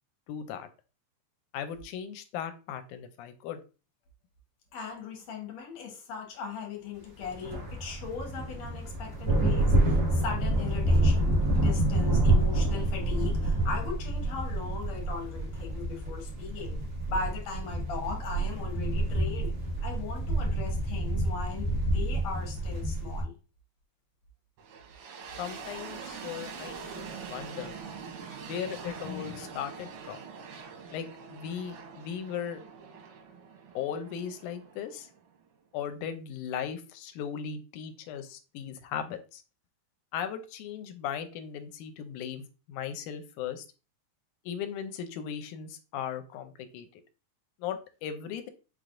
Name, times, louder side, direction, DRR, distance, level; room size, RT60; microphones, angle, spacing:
voice 1, 0.3-0.7 1.5-3.6 25.4-27.8 28.3-30.2 30.9-32.6 33.8-35.1 35.7-39.4 40.1-43.6 44.5-47.0 47.6-48.5, left 8 dB, 85° left, 2.1 m, -37 dB
voice 2, 4.7-16.8 17.1-19.5 19.8-23.3, left 5 dB, 65° left, 2.2 m, -39 dB
sound 1, 7.2-23.2, right 1 dB, 35° right, 2.1 m, -28 dB
sound 2, 24.6-35.5, right 5 dB, 90° right, 2.6 m, -44 dB
5.9 x 3.3 x 2.5 m
omnidirectional pair, 3.5 m